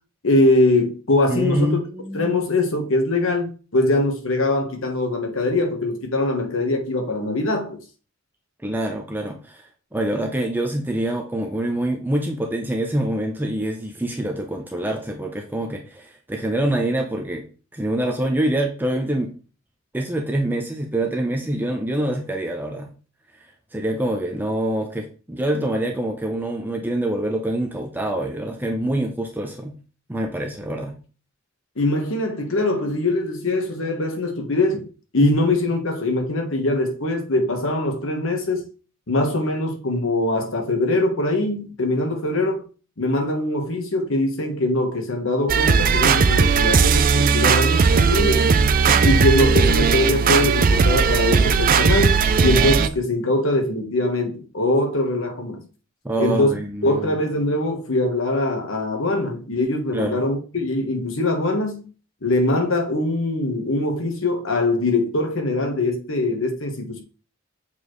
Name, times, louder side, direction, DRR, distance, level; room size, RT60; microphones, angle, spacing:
voice 1, 0.2-1.8 2.1-7.8 31.8-34.8 35.1-38.6 39.1-42.6 43.0-48.5 49.0-55.6 56.2-56.5 56.8-61.8 62.2-67.0, left 2 dB, 70° left, 1.3 m, -22 dB
voice 2, 1.3-2.4 8.6-17.4 17.7-19.3 19.9-22.9 23.7-29.7 30.1-31.0 35.2-35.4 49.1-49.5 56.0-57.1 59.9-60.2, right 1 dB, 10° right, 0.7 m, -25 dB
sound 1, 45.5-52.9, right 5 dB, 45° right, 0.4 m, -17 dB
7.1 x 4.3 x 3.1 m
head